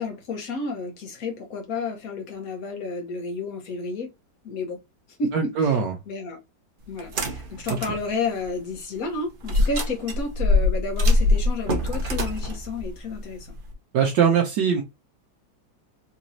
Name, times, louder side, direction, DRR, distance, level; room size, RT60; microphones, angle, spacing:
voice 1, 0.0-4.1 4.4-4.8 5.2-5.8 6.1-6.4 6.9-13.5, left 3 dB, 55° left, 1.4 m, -31 dB
voice 2, 5.3-5.9 7.8-7.9 13.9-14.8, right 7 dB, 70° right, 1.3 m, -21 dB
sound 1, 7.0-8.0 8.4-8.5 9.4-13.7, left 2 dB, 50° right, 0.6 m, -23 dB
4.0 x 3.0 x 2.7 m
omnidirectional pair, 2.0 m